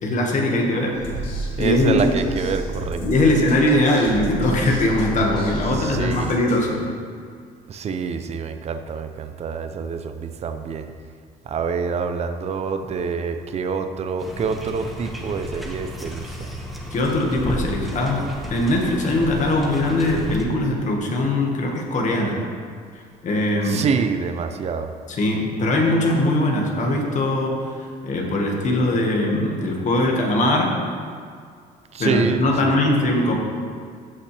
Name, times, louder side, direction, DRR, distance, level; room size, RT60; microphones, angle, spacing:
voice 1, 0.0-1.0 1.6-2.0 3.0-6.8 16.9-18.2 18.5-22.4 23.2-23.8 25.1-27.7 28.0-30.7 32.0-33.3, left 1 dB, 45° left, 0 dB, 1.7 m, -21 dB
sound 1, 0.9-6.6, right 2 dB, 85° left, 2.5 m, -31 dB
voice 2, 1.6-3.3 5.7-6.4 7.7-10.9 11.5-16.5 23.6-24.9 31.9-32.8, right 5 dB, 40° right, 8 dB, 0.6 m, -26 dB
sound 2, 14.2-20.5, equal, ahead, 1.2 m, -33 dB
14.5 x 5.7 x 3.4 m, 2.1 s
cardioid pair, 110°, 17 cm